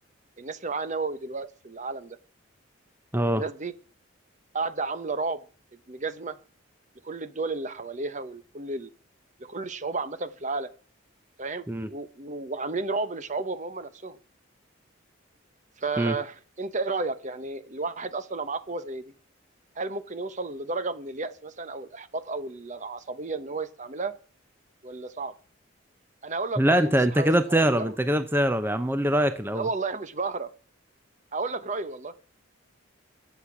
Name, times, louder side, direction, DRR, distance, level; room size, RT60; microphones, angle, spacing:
voice 1, 0.4-2.2 3.3-3.7 4.5-5.4 5.9-6.4 7.0-8.9 9.5-10.7 11.4-14.2 15.8-19.1 19.8-24.2 24.8-25.3 26.2-26.9 27.2-28.0 29.5-30.5 31.3-32.1, right 3 dB, 35° right, 13 dB, 0.9 m, -32 dB
voice 2, 3.1-3.4 11.7-11.9 16.0-16.2 26.6-29.7, right 1 dB, 10° right, 10 dB, 0.7 m, -23 dB
22.0 x 8.2 x 6.0 m, 0.40 s
head